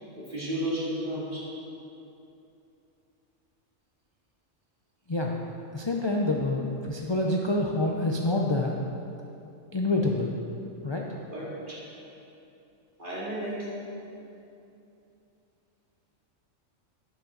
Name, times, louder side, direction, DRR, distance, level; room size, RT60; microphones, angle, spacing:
voice 1, 0.2-1.5 11.3-12.0 13.0-13.8, right 1 dB, 40° right, -8 dB, 3.0 m, -33 dB
voice 2, 5.7-8.8 9.7-10.4 10.8-11.0, left 2 dB, 30° left, -1 dB, 0.5 m, -27 dB
11.5 x 9.6 x 4.0 m, 2.8 s
omnidirectional pair, 1.3 m